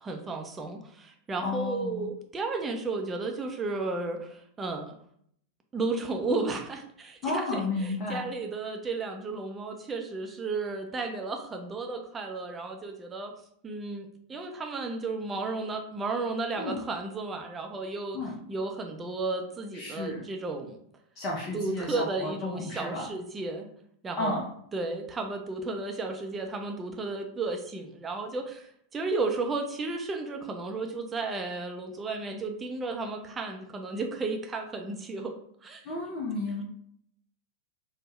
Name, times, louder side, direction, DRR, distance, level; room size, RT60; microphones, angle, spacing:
voice 1, 0.0-4.9 5.7-13.3 13.6-18.2 18.5-20.8 21.5-23.7 24.0-24.4 24.7-35.3 35.6-35.8, right 3 dB, 20° right, 3 dB, 0.5 m, -33 dB
voice 2, 1.4-2.1 7.2-8.3 16.6-16.8 18.1-18.3 19.7-20.2 21.2-23.1 24.2-24.5 35.8-36.6, left 2 dB, 35° left, -3 dB, 0.6 m, -32 dB
3.4 x 2.1 x 3.0 m, 0.67 s
figure-of-eight pair, 90°, 0 cm